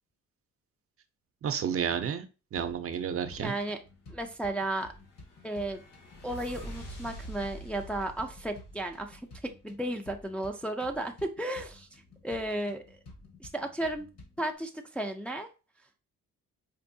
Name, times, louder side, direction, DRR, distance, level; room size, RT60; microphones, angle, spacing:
voice 1, 1.4-2.3 2.5-3.5, right 8 dB, 50° right, 8 dB, 0.5 m, -31 dB
sound 1, 2.6-14.6, left 2 dB, 55° left, 1.3 m, -53 dB
voice 2, 3.4-3.8 4.1-4.9 5.4-5.8 6.2-11.9 12.2-13.0 13.4-14.1 14.4-15.5, right 1 dB, 5° left, 3 dB, 0.4 m, -34 dB
sound 2, 4.8-9.5, right 1 dB, 85° left, 1.6 m, -46 dB
4.4 x 2.6 x 2.6 m, 0.31 s
cardioid pair, 90°, 30 cm